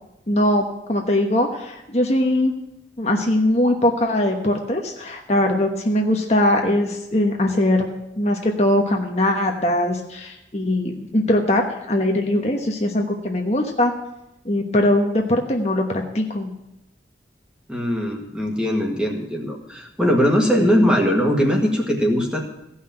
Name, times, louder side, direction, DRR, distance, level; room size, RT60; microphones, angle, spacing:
voice 1, 0.3-2.5 3.0-7.9 8.2-13.9 14.4-15.8 16.1-16.5 20.6-20.8, left 1 dB, 35° left, 2 dB, 1.1 m, -21 dB
voice 2, 17.7-22.4, equal, 5° right, 0 dB, 1.7 m, -20 dB
15.5 x 5.7 x 8.8 m, 0.87 s
head